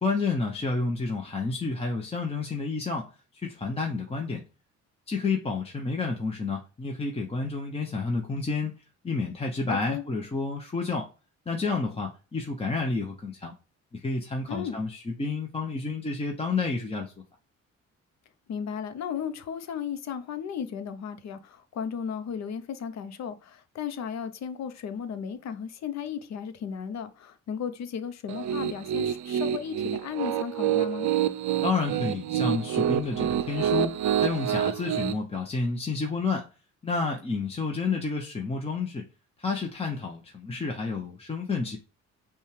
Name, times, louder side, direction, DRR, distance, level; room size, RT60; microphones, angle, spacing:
voice 1, 0.0-4.4 5.1-8.7 9.0-11.1 11.5-13.5 13.9-17.1 31.6-36.5 36.8-39.0 39.4-41.8, left 4 dB, 20° left, 0.8 m, -30 dB
voice 2, 9.7-10.0 14.5-14.8 18.5-31.1, left 7 dB, 65° left, 0.7 m, -35 dB
Piano, 28.3-35.1, right 10 dB, 70° right, 0.5 m, -27 dB
5.3 x 2.4 x 3.2 m
cardioid pair, 90°, 30 cm